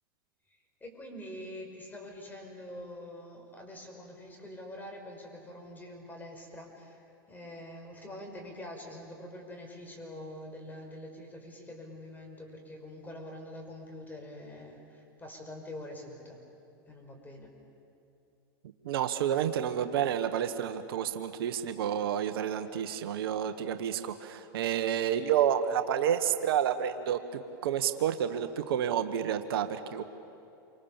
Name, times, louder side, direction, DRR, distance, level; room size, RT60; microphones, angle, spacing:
voice 1, 0.8-16.4 16.9-17.5, left 1 dB, 15° left, 2 dB, 5.7 m, -45 dB
voice 2, 18.8-30.0, right 9 dB, 75° right, 9 dB, 1.3 m, -30 dB
28.5 x 25.5 x 7.3 m, 2.7 s
hypercardioid pair, 115°, 13 cm